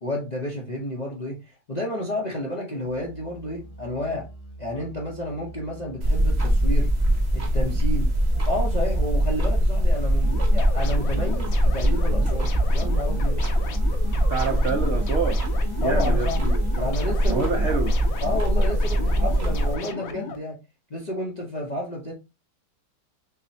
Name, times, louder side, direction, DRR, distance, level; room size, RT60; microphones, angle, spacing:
voice 1, 0.0-4.3 4.6-6.9 7.3-8.1 8.5-13.4 15.8-17.6 18.2-20.6 20.9-22.1, left 1 dB, 45° left, 0.5 m, -31 dB
Musical instrument, 2.8-14.8, right 2 dB, 85° left, 1.5 m, -43 dB
sound 1, 6.0-19.8, equal, 35° right, 0.7 m, -22 dB
sound 2, 10.2-20.4, left 5 dB, 60° left, 1.0 m, -37 dB
voice 2, 14.3-15.4 15.8-16.3 16.7-16.9 17.3-18.0, right 4 dB, 75° right, 0.6 m, -27 dB
6.1 x 2.1 x 2.6 m
omnidirectional pair, 1.9 m